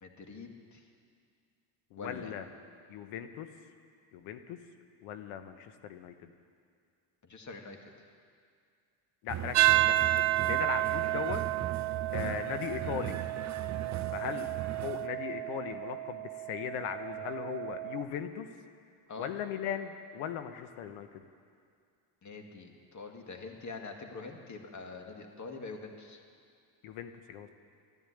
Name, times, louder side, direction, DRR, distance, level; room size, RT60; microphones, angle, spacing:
voice 1, 0.0-0.8 2.0-2.3 7.2-8.1 19.1-19.3 22.2-26.2, left 3 dB, 35° left, 3 dB, 2.1 m, -45 dB
voice 2, 1.9-2.5 2.9-3.5 4.1-4.6 5.0-6.3 9.2-11.4 12.1-13.2 14.1-18.5 19.2-21.2 26.8-27.5, left 9 dB, 85° left, 9 dB, 1.1 m, -38 dB
sound 1, 9.3-15.1, right 11 dB, 35° right, 0.6 m, -39 dB
sound 2, 9.5-18.0, right 17 dB, 90° right, 0.7 m, -31 dB
12.5 x 11.0 x 9.9 m, 2.2 s
cardioid pair, 95°, 49 cm